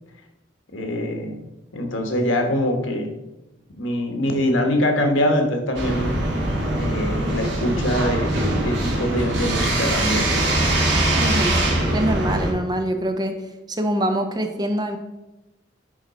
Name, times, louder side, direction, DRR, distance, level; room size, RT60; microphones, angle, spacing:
voice 1, 0.7-1.4 1.7-3.2 3.7-6.1 6.8-10.3, left 1 dB, 90° left, 5 dB, 1.2 m, -23 dB
sound 1, 5.8-12.5, right 1 dB, 65° right, 1.9 m, -22 dB
voice 2, 11.2-11.6 11.9-13.4 13.7-15.0, right 1 dB, 20° right, 6 dB, 0.6 m, -24 dB
10.5 x 3.9 x 4.1 m, 1.0 s
head